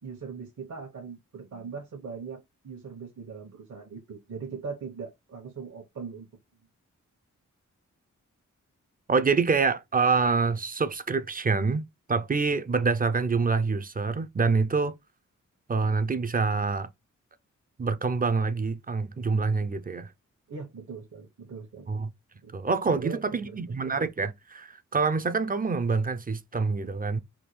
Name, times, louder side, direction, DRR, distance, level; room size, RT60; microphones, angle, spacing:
voice 1, 0.0-6.3 20.5-21.9 22.4-22.5 22.9-23.6, right 5 dB, 65° right, 1.0 m, -40 dB
voice 2, 9.1-11.8 12.1-14.9 15.7-16.9 17.8-20.1 21.9-22.1 22.5-27.2, right 4 dB, 30° right, 0.4 m, -26 dB
3.6 x 2.3 x 3.1 m
cardioid pair, 65°, 31 cm